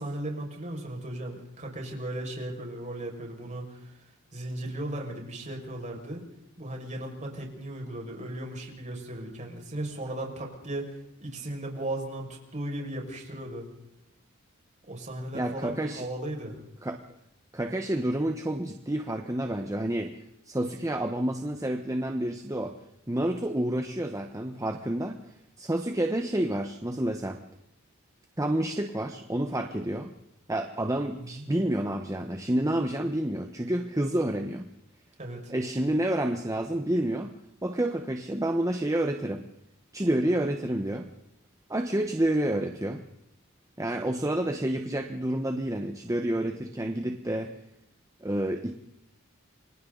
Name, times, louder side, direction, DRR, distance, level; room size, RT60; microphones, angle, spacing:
voice 1, 0.0-3.9 4.3-6.2 6.6-10.8 11.2-13.6 14.9-16.6 31.1-31.4 35.2-35.5, right 1 dB, 35° right, 1 dB, 5.9 m, -36 dB
voice 2, 15.3-16.1 16.8-17.0 17.5-20.2 20.5-22.8 23.1-25.2 25.6-27.4 28.4-30.1 30.5-34.6 35.5-37.3 37.6-39.4 39.9-41.1 41.7-43.0 43.8-47.5 48.2-48.7, right 1 dB, 15° right, 5 dB, 1.2 m, -29 dB
28.5 x 25.0 x 4.0 m, 0.81 s
head